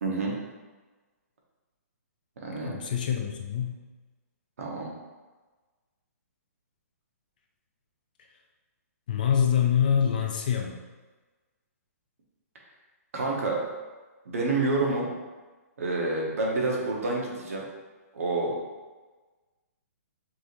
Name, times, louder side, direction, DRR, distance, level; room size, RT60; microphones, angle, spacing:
voice 1, 0.0-0.3 2.4-2.7 4.6-4.9 13.1-13.6 14.2-15.1 15.8-17.6 18.1-18.6, right 3 dB, 60° right, -2 dB, 1.1 m, -28 dB
voice 2, 2.6-3.8 9.1-10.8, left 8 dB, 30° left, 3 dB, 0.3 m, -25 dB
5.3 x 3.1 x 2.6 m, 1.3 s
hypercardioid pair, 175°, 9 cm